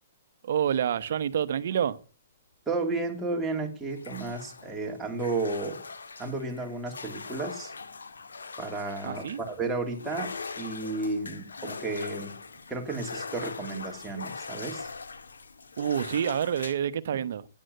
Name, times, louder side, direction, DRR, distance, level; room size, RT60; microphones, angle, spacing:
voice 1, 0.4-2.0 9.0-9.4 15.8-17.5, right 9 dB, 65° right, 1.0 m, -28 dB
voice 2, 2.7-5.8 6.2-7.7 8.6-12.4 12.7-14.9, right 3 dB, 10° right, 2.8 m, -33 dB
sound 1, 3.9-16.7, left 4 dB, 90° left, 1.7 m, -41 dB
11.0 x 9.6 x 7.9 m
hypercardioid pair, 135°, 0 cm